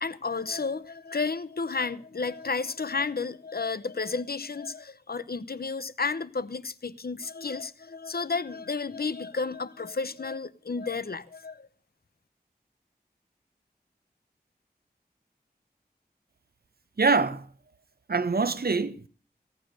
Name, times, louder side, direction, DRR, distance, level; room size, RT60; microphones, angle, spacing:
voice 1, 0.0-11.7, left 4 dB, 70° left, 0.8 m, -32 dB
voice 2, 17.0-17.5 18.1-19.1, right 4 dB, 70° right, 0.8 m, -24 dB
16.0 x 9.2 x 6.5 m
wide cardioid pair, 45°, 17 cm